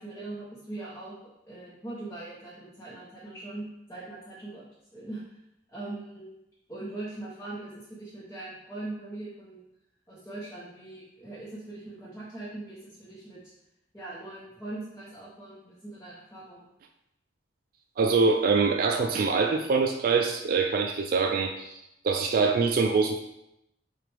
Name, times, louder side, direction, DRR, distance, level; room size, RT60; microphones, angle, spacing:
voice 1, 0.0-4.6 4.9-5.4 5.7-6.3 6.7-9.6 10.1-13.5 13.9-16.7, right 2 dB, 15° left, -9 dB, 0.9 m, -41 dB
voice 2, 18.0-23.2, right 4 dB, 50° right, 4 dB, 0.3 m, -24 dB
6.0 x 2.5 x 3.3 m, 0.83 s
head